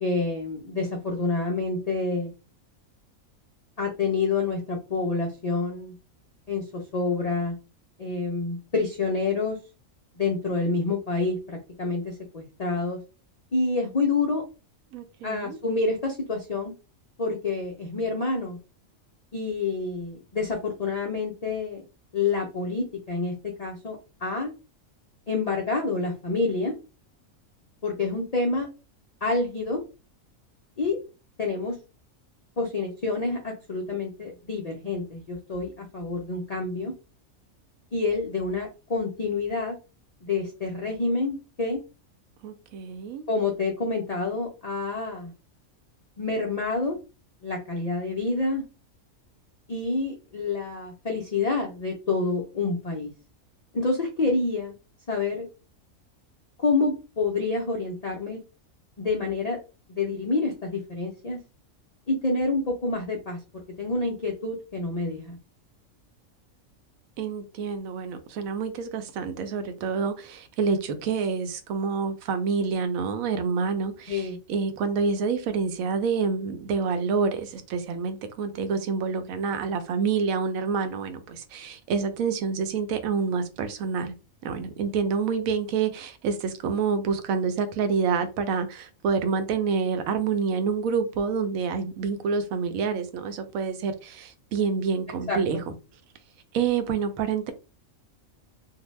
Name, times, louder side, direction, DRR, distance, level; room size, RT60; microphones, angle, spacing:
voice 1, 0.0-2.3 3.8-5.9 6.5-7.6 8.0-9.6 10.2-13.0 13.5-14.4 15.2-16.7 17.2-18.6 19.3-21.8 22.1-24.5 25.3-26.7 27.8-28.7 29.2-29.8 30.8-31.0 31.4-31.8 32.6-36.9 37.9-39.8 40.2-41.8 43.3-45.3 46.2-47.0 47.4-48.6 49.7-53.1 53.7-54.7 55.1-55.5 56.6-58.4 59.0-59.6 59.9-61.4 62.1-65.4 74.1-74.4 95.3-95.4, left 3 dB, 65° left, 0.4 m, -28 dB
voice 2, 14.9-15.6 42.4-43.3 67.2-84.1 84.4-95.7 96.5-97.5, right 5 dB, 85° right, 1.0 m, -27 dB
2.6 x 2.1 x 3.1 m
omnidirectional pair, 1.4 m